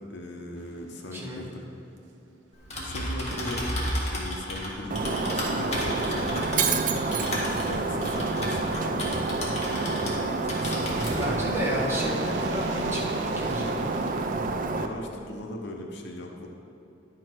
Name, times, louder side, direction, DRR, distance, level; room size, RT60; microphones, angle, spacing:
voice 1, 0.0-1.7 2.8-3.8 4.1-9.0 9.7-11.8 14.7-16.5, left 1 dB, 65° left, 2 dB, 0.9 m, -38 dB
sound 1, 0.5-8.0 10.9-14.6, right 2 dB, 70° right, 0.8 m, -44 dB
voice 2, 1.1-1.4 11.2-13.9, equal, 15° right, -6 dB, 1.6 m, -32 dB
Typing, 2.5-10.2 10.5-11.3, left 1 dB, 35° left, 1.7 m, -33 dB
Shatter, 4.9-14.9, right 3 dB, 45° right, 0.5 m, -28 dB
10.5 x 6.0 x 4.6 m, 2.6 s
head